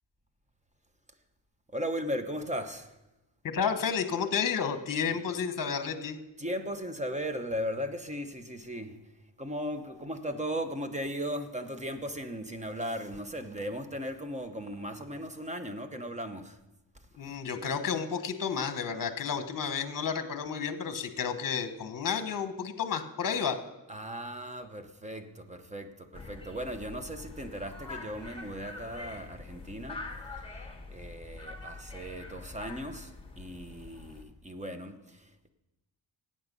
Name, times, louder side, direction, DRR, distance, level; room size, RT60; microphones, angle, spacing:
voice 1, 1.7-3.0 6.4-9.0 9.4-16.6 17.2-17.4 23.9-30.0 30.9-35.5, equal, 15° right, 8 dB, 0.9 m, -37 dB
voice 2, 3.4-6.2 17.2-23.6, left 6 dB, 50° left, 9 dB, 1.2 m, -31 dB
sound 1, 26.1-34.2, left 3 dB, 10° left, 1.5 m, -44 dB
14.5 x 8.9 x 5.4 m, 0.98 s
wide cardioid pair, 130°, 43 cm